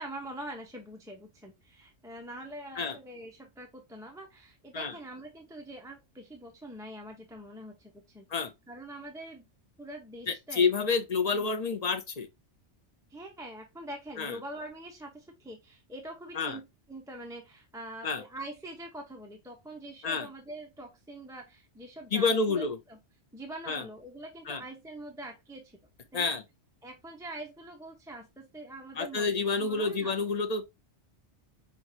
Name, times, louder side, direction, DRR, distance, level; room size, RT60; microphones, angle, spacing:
voice 1, 0.0-9.5 9.8-10.8 11.3-11.5 13.1-23.0 23.3-25.7 26.1-26.4 26.8-29.3 29.6-30.1, right 1 dB, 5° right, 0.8 m, -44 dB
voice 2, 10.3-12.3 14.2-14.4 16.3-16.6 18.0-18.2 20.0-20.3 22.1-22.8 23.7-23.8 24.5-24.6 26.1-26.4 29.0-30.6, left 4 dB, 45° left, 0.6 m, -29 dB
5.9 x 2.7 x 2.7 m
omnidirectional pair, 1.1 m